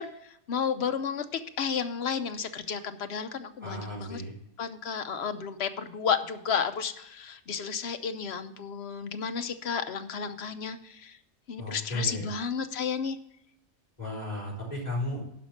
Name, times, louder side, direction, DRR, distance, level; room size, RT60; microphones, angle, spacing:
voice 1, 0.0-4.2 4.6-11.2 11.5-13.2, left 6 dB, 55° left, 9 dB, 1.0 m, -32 dB
voice 2, 3.6-4.3 11.6-12.3 14.0-15.2, left 1 dB, 30° left, -4 dB, 4.0 m, -34 dB
11.5 x 5.3 x 7.3 m, 0.75 s
omnidirectional pair, 1.5 m